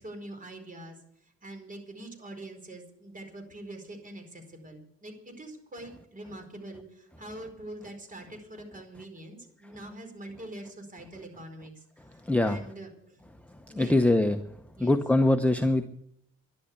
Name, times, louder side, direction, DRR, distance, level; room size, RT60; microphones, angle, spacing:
voice 1, 0.0-13.2 13.7-14.2 14.8-15.0, right 1 dB, 25° right, 5 dB, 4.6 m, -44 dB
voice 2, 13.8-14.4 14.8-15.9, left 1 dB, 5° left, 7 dB, 0.8 m, -22 dB
11.5 x 11.5 x 8.3 m, 0.74 s
cardioid pair, 90°, 30 cm